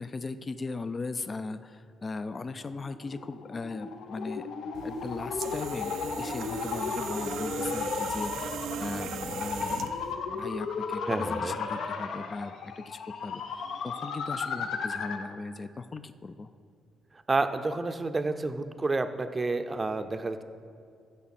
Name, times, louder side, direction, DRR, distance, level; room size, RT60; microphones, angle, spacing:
voice 1, 0.0-4.4 4.8-16.5, left 3 dB, 35° left, 12 dB, 0.4 m, -38 dB
sound 1, 2.6-15.3, left 5 dB, 65° left, 0.7 m, -35 dB
sound 2, 4.7-10.1, right 8 dB, 80° right, 0.5 m, -38 dB
voice 2, 11.1-11.5 17.3-20.4, right 3 dB, 25° right, 10 dB, 0.6 m, -29 dB
14.5 x 6.3 x 4.2 m, 2.3 s
cardioid pair, 90°, 0 cm